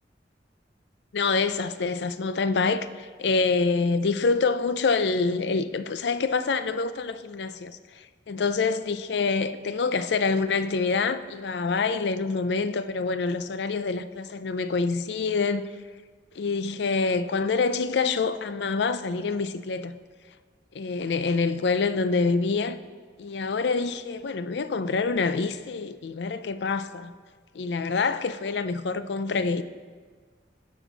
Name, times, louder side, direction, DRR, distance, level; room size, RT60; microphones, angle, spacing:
voice 1, 1.1-15.7 16.4-20.0 20.7-22.8 23.2-27.1 27.5-29.6, left 4 dB, 65° left, 0.4 m, -26 dB
16.0 x 6.4 x 4.0 m
head